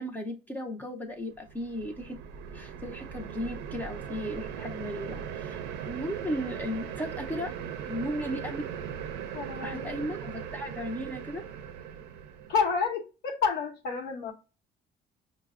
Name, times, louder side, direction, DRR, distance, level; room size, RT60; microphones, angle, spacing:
voice 1, 0.0-2.2 2.5-5.6 5.8-7.5 7.9-8.6 9.6-11.4, equal, 10° left, 2 dB, 0.5 m, -35 dB
sound 1, 1.4-12.8, right 8 dB, 85° right, 0.5 m, -39 dB
voice 2, 9.3-10.0 12.5-14.3, left 6 dB, 75° left, 3 dB, 0.8 m, -29 dB
5.6 x 2.0 x 2.3 m, 0.32 s
cardioid pair, 110°, 17 cm